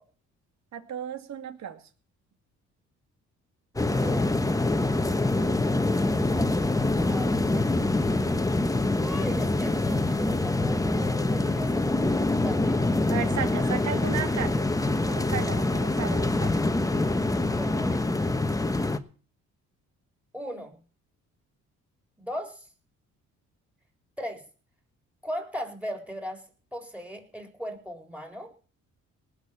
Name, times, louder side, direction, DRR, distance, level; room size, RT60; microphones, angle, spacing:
voice 1, 0.7-1.8 13.1-16.6, right 8 dB, 65° right, 8 dB, 2.4 m, -34 dB
voice 2, 3.7-4.9 7.1-8.1 9.0-12.8 17.4-18.0 20.3-20.8 22.2-22.7 24.2-24.4 25.2-26.4 26.7-28.5, equal, 5° right, 5 dB, 4.3 m, -38 dB
sound 1, 3.8-19.0, left 2 dB, 10° left, 1.2 m, -25 dB
19.0 x 6.5 x 8.5 m, 0.40 s
cardioid pair, 90°, 30 cm